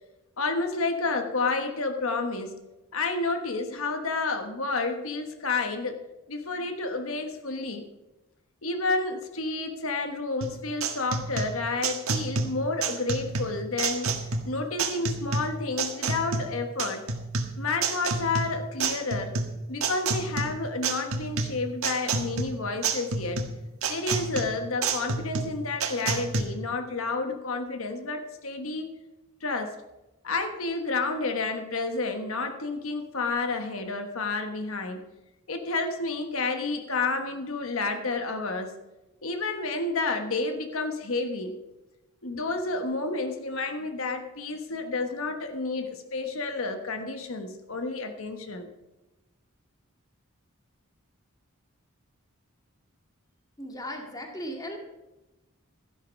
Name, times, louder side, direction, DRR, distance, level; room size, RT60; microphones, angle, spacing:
voice 1, 0.4-2.6 2.9-6.0 6.3-7.8 8.6-14.1 14.4-17.1 17.6-19.4 19.7-23.4 23.9-28.9 29.4-29.8 30.2-35.0 35.5-38.8 39.2-41.6 42.2-48.7, left 3 dB, 80° left, 6 dB, 1.3 m, -30 dB
sound 1, 10.4-26.4, right 4 dB, 85° right, 1.5 m, -30 dB
voice 2, 53.6-54.8, equal, 15° left, 2 dB, 2.1 m, -37 dB
13.5 x 11.0 x 5.3 m, 1.0 s
head